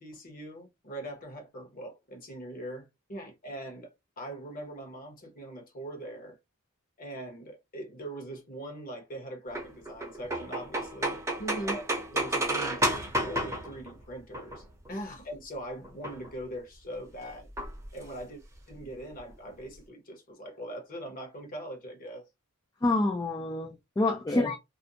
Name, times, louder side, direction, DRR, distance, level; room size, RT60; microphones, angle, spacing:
voice 1, 0.0-6.4 7.0-17.5 17.9-18.4 18.7-22.2, right 1 dB, 40° left, 0.9 m, -41 dB
sound 1, 9.6-14.9 15.8-16.3 17.5-18.2 18.5-18.6 18.8-18.9 19.2-19.6, right 1 dB, 15° right, 0.7 m, -32 dB
voice 2, 22.8-24.6, left 2 dB, 15° left, 0.3 m, -27 dB
2.5 x 2.1 x 2.7 m
head